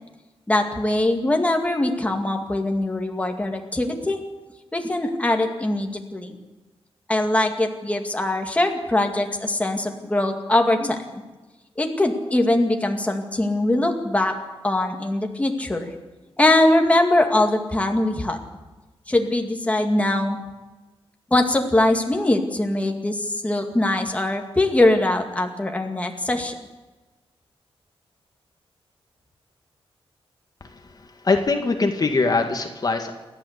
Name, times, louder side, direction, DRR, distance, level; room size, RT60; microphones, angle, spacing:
voice 1, 0.5-4.2 4.7-6.4 7.1-11.2 11.8-14.3 14.6-15.9 16.4-18.4 19.1-20.4 21.3-26.5, left 1 dB, 15° left, 3 dB, 2.2 m, -22 dB
voice 2, 31.2-33.1, left 3 dB, 40° left, 4 dB, 1.9 m, -21 dB
28.0 x 12.0 x 8.2 m, 1.2 s
wide cardioid pair, 140°, 10 cm